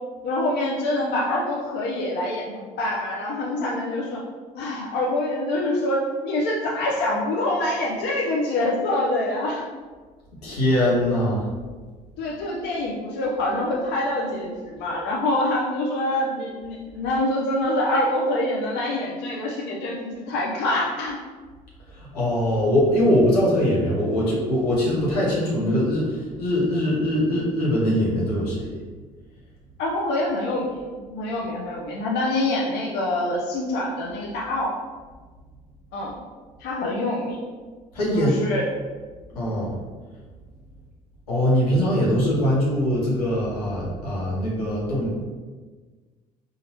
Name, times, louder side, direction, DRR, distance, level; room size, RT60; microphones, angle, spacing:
voice 1, 0.2-4.2 4.5-9.7 12.2-21.2 29.8-34.7 35.9-36.2 36.6-37.4 38.1-38.6, left 1 dB, 60° left, -3 dB, 0.6 m, -25 dB
voice 2, 10.4-11.5 21.9-28.8 37.9-38.3 39.3-39.8 41.3-45.1, equal, 90° left, -5 dB, 0.9 m, -22 dB
4.0 x 2.5 x 2.9 m, 1.4 s
hypercardioid pair, 55°, 19 cm